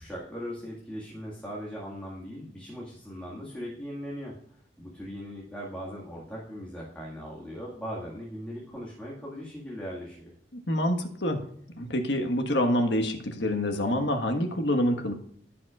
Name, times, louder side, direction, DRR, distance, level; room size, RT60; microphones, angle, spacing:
voice 1, 0.0-4.4 4.8-10.3, equal, 5° left, -5 dB, 1.9 m, -39 dB
voice 2, 10.7-11.4 11.7-15.1, left 1 dB, 70° left, 5 dB, 1.4 m, -26 dB
15.0 x 5.9 x 2.4 m, 0.67 s
head